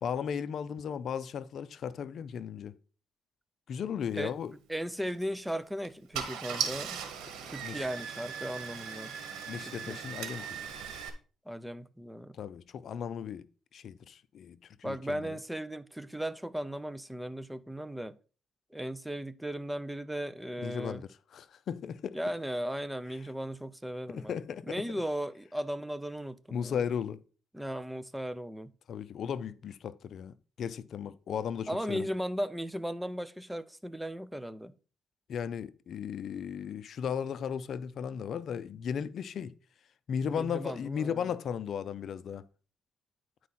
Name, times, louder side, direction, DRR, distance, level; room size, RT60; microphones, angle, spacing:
voice 1, 0.0-2.7 3.7-4.5 7.6-7.9 9.5-10.7 12.3-13.5 13.7-15.4 20.6-22.2 24.1-24.8 26.5-27.2 28.9-32.1 35.3-39.5 40.1-42.5, left 7 dB, 60° left, 0.5 m, -36 dB
voice 2, 4.7-7.0 7.5-9.1 9.7-10.0 11.5-12.4 14.8-18.2 18.7-21.0 22.1-24.4 24.7-26.8 27.5-28.7 31.7-34.7 40.3-41.3, equal, 5° right, 0.6 m, -36 dB
Car / Engine starting, 5.0-5.2 5.8-5.9 6.1-11.1, right 7 dB, 90° right, 1.5 m, -38 dB
10.0 x 4.6 x 4.2 m
cardioid pair, 90°, 0 cm